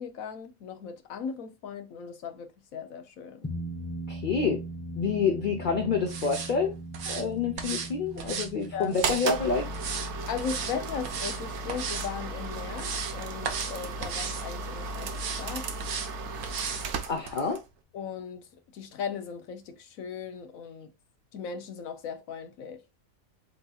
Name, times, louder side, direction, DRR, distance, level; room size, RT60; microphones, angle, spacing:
voice 1, 0.0-3.5 8.7-9.0 10.3-15.1 15.4-15.7 17.9-18.5 18.7-20.9 21.3-22.8, left 7 dB, 80° left, 1.2 m, -37 dB
sound 1, 3.4-14.1, right 2 dB, 15° left, 0.4 m, -41 dB
voice 2, 4.1-4.6 5.0-6.7 7.1-9.7 17.1-17.6, left 5 dB, 45° left, 0.8 m, -28 dB
sound 2, 6.1-6.5 6.9-7.2 7.6-7.9 8.2-9.3 9.7-10.1 10.4-10.7 11.0-11.4 11.7-12.1 12.5-13.2 13.4-13.7 14.0-14.4 15.1-15.4 15.8-16.1 16.4-16.9 17.3-17.4, right 6 dB, 90° right, 1.3 m, -35 dB
sound 3, 9.0-17.7, right 3 dB, 60° right, 1.0 m, -35 dB
7.9 x 2.7 x 2.3 m
omnidirectional pair, 1.4 m